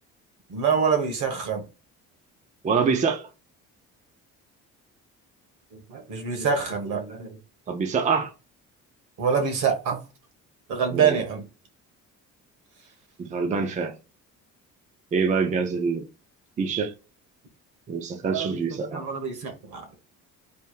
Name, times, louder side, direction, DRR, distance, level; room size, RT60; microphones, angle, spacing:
voice 1, 0.5-1.6 5.7-7.4 9.2-10.0 10.7-11.4 18.3-19.9, right 6 dB, 75° right, 1.5 m, -26 dB
voice 2, 2.6-3.3 7.7-8.3 10.9-11.2 13.2-13.9 15.1-16.1 16.6-16.9 17.9-19.0, right 5 dB, 25° right, 0.5 m, -25 dB
3.5 x 2.6 x 4.6 m
cardioid pair, 160°, 31 cm